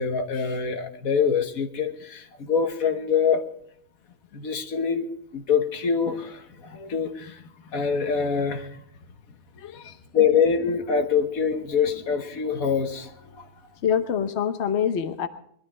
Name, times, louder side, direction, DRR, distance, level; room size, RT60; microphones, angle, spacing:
voice 1, 0.0-3.4 4.3-8.8 10.1-13.5, left 6 dB, 80° left, 6 dB, 1.7 m, -25 dB
voice 2, 9.6-10.0 13.8-15.3, left 8 dB, 55° left, 9 dB, 1.2 m, -25 dB
21.0 x 12.0 x 4.3 m, 0.66 s
omnidirectional pair, 1.5 m